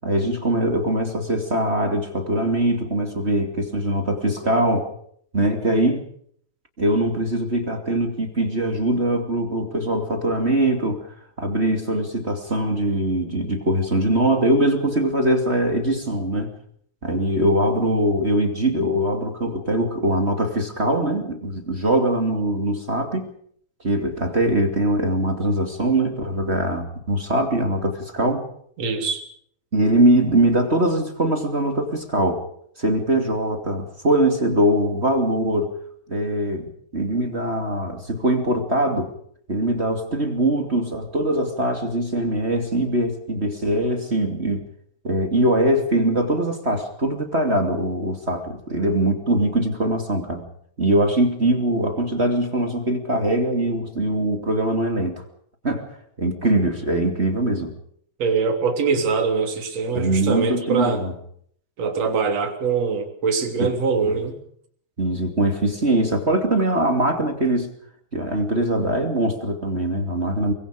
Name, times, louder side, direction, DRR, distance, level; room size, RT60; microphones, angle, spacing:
voice 1, 0.0-4.9 5.3-6.0 6.8-11.0 11.4-16.5 17.0-23.3 23.8-28.5 29.7-32.4 32.8-35.7 36.1-39.1 39.5-44.6 45.0-50.4 50.8-55.2 55.6-55.9 56.2-57.7 59.9-61.1 63.6-63.7 65.0-67.7 68.1-70.5, right 1 dB, 20° right, 4 dB, 1.7 m, -22 dB
voice 2, 28.8-29.2 58.2-61.0 61.8-64.4, right 5 dB, 35° right, 4 dB, 3.9 m, -23 dB
24.0 x 23.0 x 5.1 m, 0.63 s
omnidirectional pair, 5.5 m